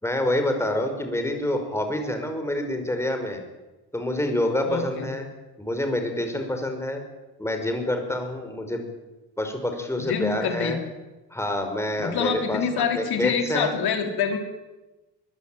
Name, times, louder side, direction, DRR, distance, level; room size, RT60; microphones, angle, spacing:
voice 1, 0.0-3.4 3.9-5.2 5.6-7.0 7.4-8.8 9.4-10.8 11.3-12.6 12.9-13.7, left 1 dB, 5° left, 5 dB, 5.4 m, -27 dB
voice 2, 4.6-5.1 10.0-10.8 12.0-14.4, left 6 dB, 70° left, 5 dB, 4.0 m, -26 dB
22.5 x 22.0 x 8.9 m, 1.1 s
cardioid pair, 130°, 40 cm